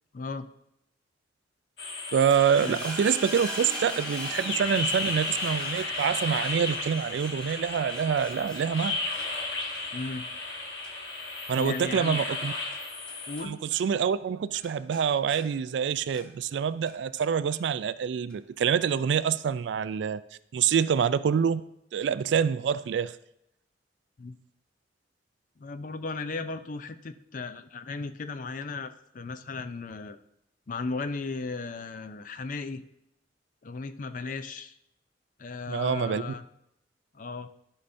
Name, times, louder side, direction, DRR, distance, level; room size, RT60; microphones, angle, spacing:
voice 1, 0.1-0.5 2.6-2.8 9.9-10.3 11.5-12.2 13.3-13.6 24.2-24.4 25.6-30.2 30.7-32.8 33.6-34.7 35.4-36.4 37.1-37.5, left 3 dB, 45° left, 11 dB, 0.4 m, -36 dB
sound 1, 1.8-13.4, left 3 dB, 65° left, 1.3 m, -34 dB
sound 2, 2.1-13.5 13.7-14.3 14.5-16.5 16.9-17.6 18.3-18.4, right 1 dB, 5° left, 1.3 m, -44 dB
voice 2, 2.1-9.0 11.5-12.5 13.4-20.2 20.5-21.6 21.9-23.2 35.7-36.2, right 7 dB, 75° right, 15 dB, 0.3 m, -26 dB
13.0 x 5.6 x 2.6 m, 0.79 s
head